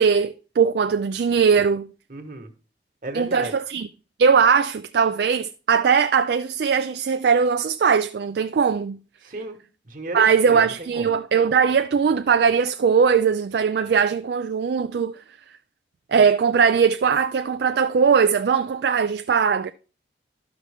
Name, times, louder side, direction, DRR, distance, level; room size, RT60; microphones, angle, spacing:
voice 1, 0.0-1.9 3.1-3.9 4.2-9.0 10.1-15.2 16.1-19.7, right 6 dB, 65° right, 0.3 m, -20 dB
voice 2, 2.1-2.5 3.0-3.5 9.2-9.6 9.8-11.1, right 2 dB, 50° right, 1.3 m, -32 dB
12.5 x 5.9 x 3.5 m
head